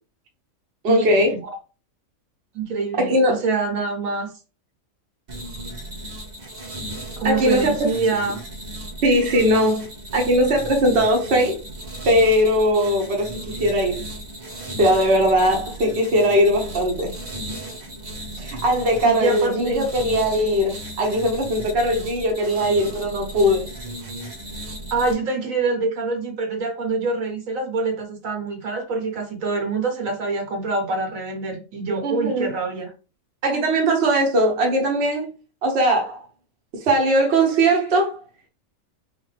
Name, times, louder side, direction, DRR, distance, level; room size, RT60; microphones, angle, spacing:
voice 1, 0.8-1.3 3.0-3.4 7.2-7.9 9.0-9.9 10.1-11.6 12.0-14.1 14.8-17.1 18.4-23.7 32.0-32.5 33.4-35.3 35.6-36.2 36.8-38.2, equal, 55° right, 1.1 m, -20 dB
voice 2, 2.5-4.3 7.2-8.4 19.0-19.9 24.9-32.9, right 3 dB, 75° right, 1.4 m, -25 dB
sound 1, 5.3-25.1, right 1 dB, 35° right, 0.9 m, -35 dB
4.2 x 2.9 x 3.2 m
omnidirectional pair, 1.4 m